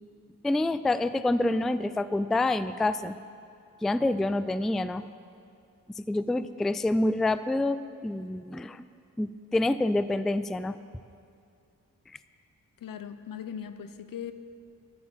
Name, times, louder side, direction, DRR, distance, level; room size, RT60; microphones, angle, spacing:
voice 1, 0.4-3.1 3.8-5.0 6.0-8.8 9.2-10.8, left 2 dB, ahead, 14 dB, 0.3 m, -27 dB
voice 2, 12.8-14.3, left 8 dB, 70° left, 11 dB, 0.8 m, -39 dB
11.0 x 8.6 x 7.3 m, 2.4 s
cardioid pair, 55°, 35 cm